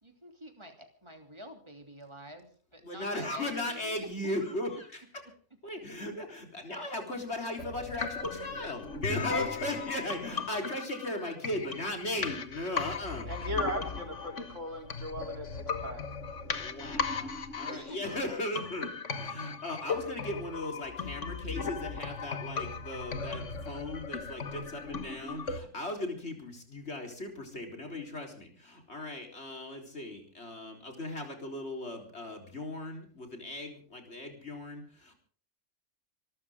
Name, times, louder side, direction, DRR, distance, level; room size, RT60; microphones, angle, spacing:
voice 1, 0.0-4.6 9.2-9.3 17.6-18.0, equal, 25° right, 4 dB, 3.1 m, -47 dB
voice 2, 2.8-5.3 5.6-13.5 16.6-35.1, left 1 dB, 60° left, 3 dB, 4.2 m, -37 dB
sound 1, 7.6-25.6, left 5 dB, 80° left, 1.9 m, -37 dB
voice 3, 13.3-16.0, right 1 dB, 90° right, 2 dB, 4.5 m, -38 dB
26.5 x 13.5 x 3.7 m, 0.43 s
omnidirectional pair, 1.2 m